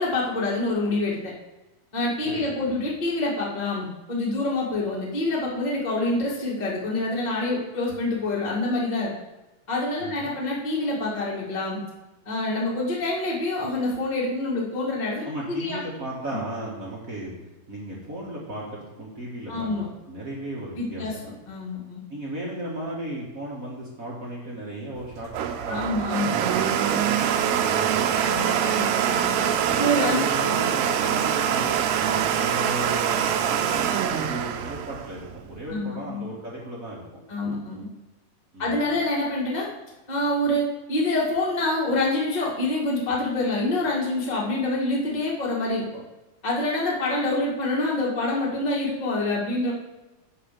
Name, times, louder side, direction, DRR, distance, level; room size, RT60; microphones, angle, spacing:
voice 1, 0.0-1.3 1.9-9.1 9.7-11.8 12.2-15.3 15.6-15.8 16.3-16.4 19.5-19.9 20.8-21.2 21.5-22.0 25.7-26.4 28.2-29.5 29.8-30.2 35.7-36.2 37.3-37.9 38.6-39.7 40.1-45.8 46.4-49.7, left 2 dB, 20° left, -4 dB, 1.3 m, -26 dB
voice 2, 2.2-2.7 10.0-10.3 15.2-17.3 17.7-21.3 22.1-28.5 29.6-37.0 38.5-38.9, right 1 dB, 40° right, -5 dB, 1.3 m, -35 dB
Domestic sounds home sounds, 25.0-35.7, right 9 dB, 80° right, 1.9 m, -24 dB
6.7 x 5.5 x 6.6 m, 1.1 s
omnidirectional pair, 3.6 m